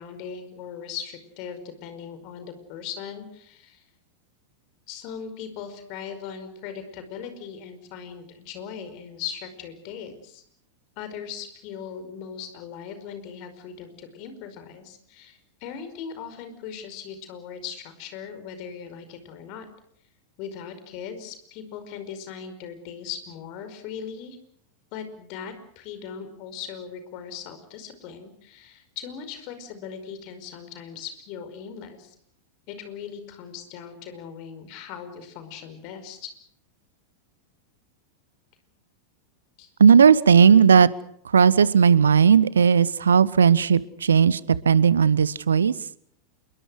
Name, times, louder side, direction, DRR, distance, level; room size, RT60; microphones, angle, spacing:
voice 1, 0.0-3.8 4.9-10.4 11.0-19.7 20.4-24.4 24.9-32.2 32.7-36.3 39.6-39.7, left 7 dB, 45° left, 9 dB, 5.2 m, -39 dB
voice 2, 39.8-40.9 41.2-45.8, right 7 dB, 70° right, 20 dB, 1.0 m, -16 dB
28.5 x 22.5 x 6.4 m, 0.65 s
figure-of-eight pair, 90°, 0 cm